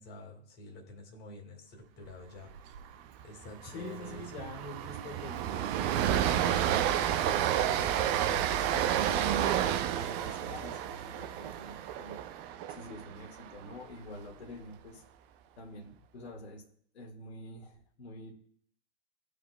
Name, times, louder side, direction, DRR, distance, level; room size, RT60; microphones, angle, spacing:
voice 1, 0.0-2.5 3.2-4.4, left 1 dB, 30° left, 1 dB, 2.1 m, -48 dB
Train, 2.5-2.8 3.1-3.2 3.6-13.7, right 10 dB, 30° right, 0.5 m, -30 dB
voice 2, 3.7-6.5 7.3-9.5 9.8-12.2 12.7-15.0 15.6-16.6 16.9-18.4, left 1 dB, 70° left, -1 dB, 2.0 m, -46 dB
14.0 x 5.0 x 2.3 m, 0.62 s
hypercardioid pair, 105°, 33 cm